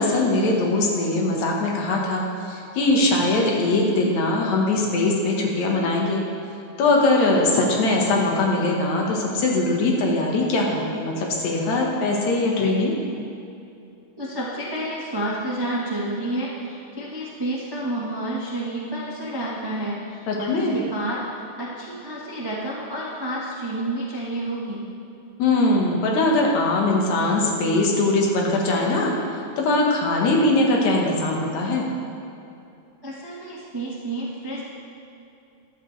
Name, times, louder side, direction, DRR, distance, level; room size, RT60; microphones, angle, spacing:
voice 1, 0.0-2.2 2.5-6.2 6.8-12.9 20.3-20.8 25.4-29.1 29.6-31.9, left 2 dB, 70° left, -1 dB, 2.7 m, -21 dB
voice 2, 14.2-24.8 33.0-34.6, right 1 dB, 40° right, -6 dB, 0.3 m, -30 dB
13.5 x 12.0 x 3.3 m, 2.7 s
omnidirectional pair, 3.4 m